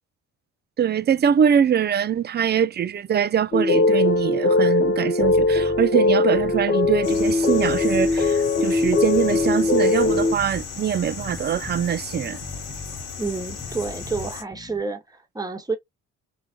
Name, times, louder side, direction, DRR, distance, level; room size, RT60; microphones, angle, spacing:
voice 1, 0.8-12.4, right 8 dB, 30° right, 0.4 m, -23 dB
sound 1, 3.5-10.3, left 3 dB, 35° left, 1.1 m, -20 dB
sound 2, 5.2-14.8, left 1 dB, 5° left, 0.8 m, -40 dB
sound 3, 7.0-14.4, left 6 dB, 70° left, 1.1 m, -36 dB
voice 2, 13.2-15.8, right 4 dB, 10° right, 1.1 m, -29 dB
3.2 x 2.3 x 2.2 m
supercardioid pair, 60°, 34 cm